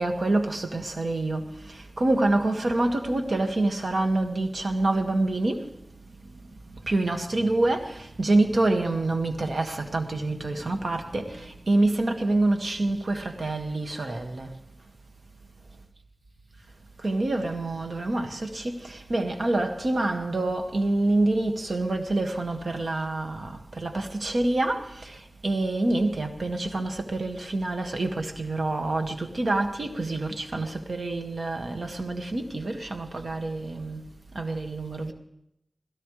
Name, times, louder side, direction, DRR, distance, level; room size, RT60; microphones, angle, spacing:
voice 1, 0.0-1.5 2.0-5.7 6.8-14.5 17.0-25.1 25.4-34.0 34.4-35.1, right 2 dB, 80° right, 2.0 m, -26 dB
20.5 x 17.5 x 3.4 m
wide cardioid pair, 45°, 0 cm